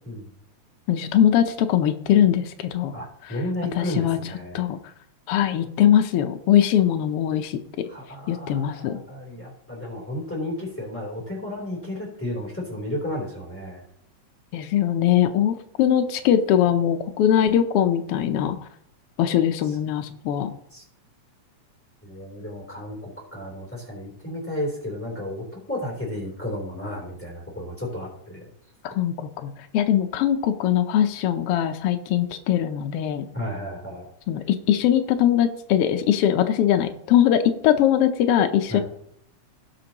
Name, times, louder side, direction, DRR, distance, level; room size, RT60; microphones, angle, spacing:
voice 1, 0.9-3.0 3.2-3.4 3.7-4.2 4.5-4.8 5.3-7.6 8.3-9.0 14.5-18.6 19.2-20.5 28.8-33.2 34.3-38.8, left 10 dB, 75° left, 6 dB, 1.3 m, -21 dB
voice 2, 2.9-4.6 7.9-13.8 20.7-20.8 22.0-28.5 33.3-34.1 38.7-38.8, left 1 dB, 5° left, -3 dB, 3.0 m, -33 dB
17.5 x 6.1 x 2.9 m, 0.68 s
omnidirectional pair, 3.4 m